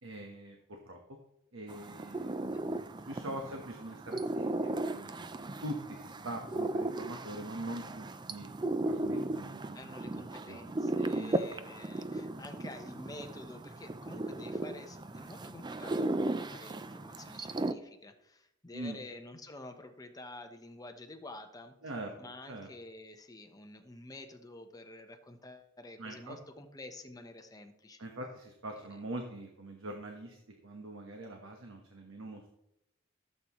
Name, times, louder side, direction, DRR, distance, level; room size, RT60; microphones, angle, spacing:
voice 1, 0.0-1.0 1.5-2.8 3.1-5.3 5.6-8.5 8.8-9.6 10.1-10.7 11.1-11.5 18.7-19.0 21.8-22.1 22.5-22.7 26.0-26.4 28.0-32.5, right 1 dB, 80° right, 2 dB, 1.3 m, -43 dB
sound 1, 1.7-17.7, right 2 dB, 20° right, 0.5 m, -36 dB
voice 2, 9.7-21.7 22.2-28.0 28.8-28.9, left 2 dB, 20° left, 6 dB, 1.0 m, -49 dB
15.5 x 7.9 x 3.1 m, 0.85 s
head